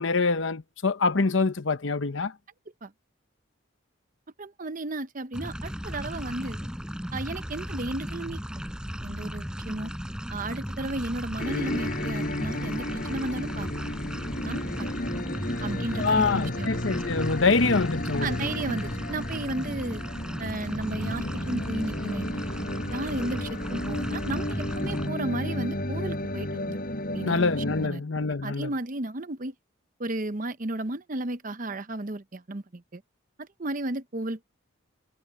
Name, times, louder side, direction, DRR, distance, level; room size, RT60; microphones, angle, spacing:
voice 1, 0.0-2.3 16.0-18.4 27.3-28.7, left 4 dB, 70° left, 1.0 m, -25 dB
voice 2, 4.4-6.6 7.1-8.4 9.0-9.9 10.3-13.7 14.4-14.9 15.6-16.8 18.2-20.0 20.4-22.4 22.9-26.8 27.1-27.4 27.8-28.0 28.4-29.5 30.0-33.0 33.4-34.4, right 2 dB, 40° right, 0.9 m, -34 dB
sound 1, 5.3-25.1, equal, 5° right, 4.6 m, -36 dB
sound 2, 11.4-27.9, left 1 dB, 45° left, 5.6 m, -33 dB
head